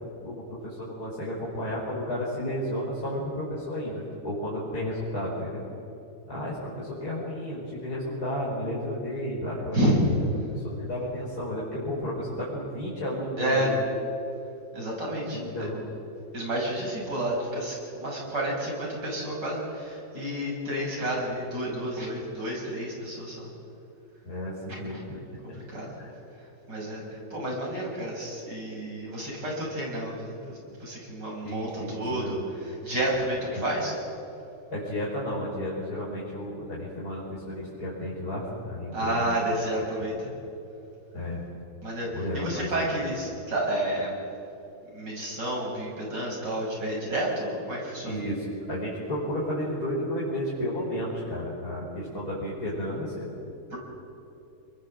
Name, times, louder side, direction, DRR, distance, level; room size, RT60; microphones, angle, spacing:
voice 1, 0.0-5.6 6.3-9.8 10.1-10.2 10.5-13.8 15.3-15.9 24.2-25.6 26.0-26.1 31.4-32.4 33.5-33.6 34.7-39.4 40.1-40.2 41.1-41.4 42.1-42.9 48.0-53.3, left 1 dB, 50° left, -7 dB, 5.4 m, -32 dB
voice 2, 13.4-13.7 14.7-15.4 16.3-17.7 18.0-23.5 24.9-25.0 25.5-25.9 26.7-27.0 27.3-32.4 32.8-33.9 38.9-40.1 41.8-44.1 44.9-48.2 53.7-53.8, right 1 dB, 60° right, -3 dB, 7.3 m, -30 dB
28.5 x 22.0 x 7.7 m, 2.7 s
omnidirectional pair, 2.1 m